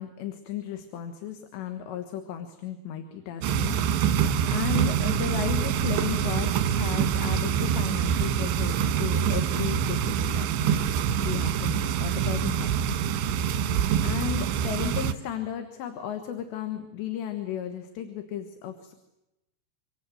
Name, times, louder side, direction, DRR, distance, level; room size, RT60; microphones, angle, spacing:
voice 1, 0.0-3.8 4.1-10.5 11.2-13.0 14.0-18.9, left 9 dB, 80° left, 7 dB, 3.7 m, -35 dB
sound 1, 3.4-15.1, right 8 dB, 90° right, 3.6 m, -25 dB
27.0 x 25.5 x 7.8 m, 0.94 s
omnidirectional pair, 5.0 m